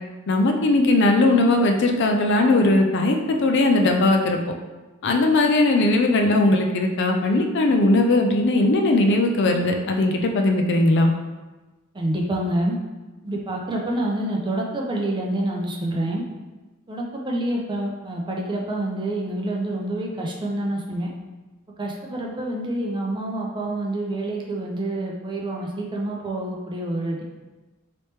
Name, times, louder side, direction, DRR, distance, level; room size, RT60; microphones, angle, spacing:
voice 1, 0.3-4.4 5.0-11.1, left 2 dB, 55° left, 3 dB, 0.4 m, -19 dB
voice 2, 11.9-12.8 13.2-16.2 16.9-21.1 21.8-27.2, right 1 dB, 20° right, -1 dB, 0.5 m, -27 dB
3.1 x 2.9 x 3.3 m, 1.2 s
head